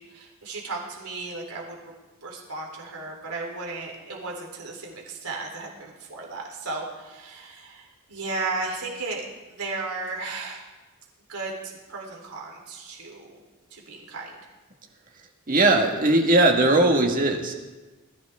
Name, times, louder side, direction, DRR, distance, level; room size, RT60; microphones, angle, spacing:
voice 1, 0.0-1.8 2.2-10.6 11.3-13.4 13.7-14.4, right 3 dB, 85° right, -1 dB, 3.7 m, -35 dB
voice 2, 15.5-17.5, right 2 dB, 40° right, 2 dB, 1.7 m, -19 dB
20.5 x 14.5 x 3.6 m, 1.2 s
head